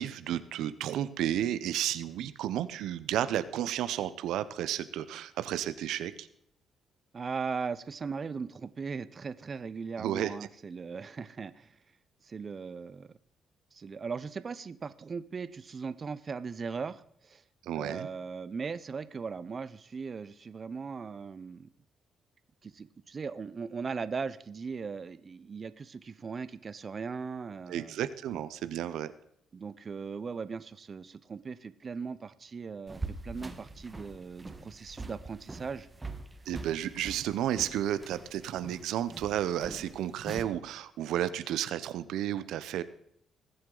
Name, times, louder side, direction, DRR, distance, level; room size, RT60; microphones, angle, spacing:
voice 1, 0.0-6.3 10.0-10.3 17.6-18.1 27.7-29.1 36.5-42.8, right 11 dB, 85° right, 14 dB, 0.6 m, -32 dB
voice 2, 7.1-11.7 12.2-13.1 13.7-17.4 17.8-21.7 22.6-28.0 29.5-35.9, right 5 dB, 40° right, 15 dB, 0.6 m, -38 dB
sound 1, 32.9-40.4, right 2 dB, 20° right, 1.4 m, -43 dB
20.5 x 7.8 x 3.9 m, 0.70 s
cardioid pair, 90°, 0 cm